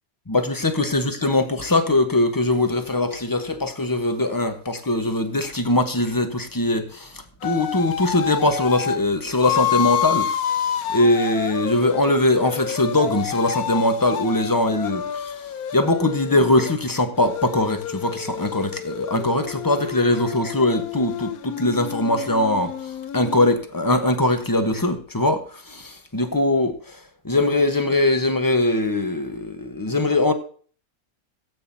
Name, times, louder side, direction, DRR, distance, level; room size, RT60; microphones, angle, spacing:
voice 1, 0.3-10.6 10.9-15.3 15.7-27.0 27.2-30.3, left 2 dB, 15° left, 1.0 m, -21 dB
sound 1, 7.4-9.0 9.4-16.8 17.2-23.5, left 10 dB, 85° left, 1.2 m, -29 dB
17.0 x 8.7 x 2.8 m
omnidirectional pair, 1.5 m